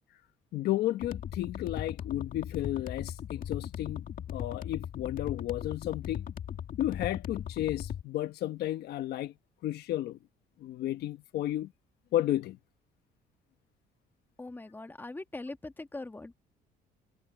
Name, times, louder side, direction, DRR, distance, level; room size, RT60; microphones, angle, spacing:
voice 1, 0.5-6.3 6.8-9.3 9.6-10.2 10.6-11.7 12.1-12.6, left 13 dB, 70° left, 1.2 m, -33 dB
sound 1, 1.0-8.0, left 9 dB, 55° left, 2.2 m, -38 dB
voice 2, 14.4-16.4, left 2 dB, 10° left, 1.4 m, -41 dB
cardioid pair, 110°, 17 cm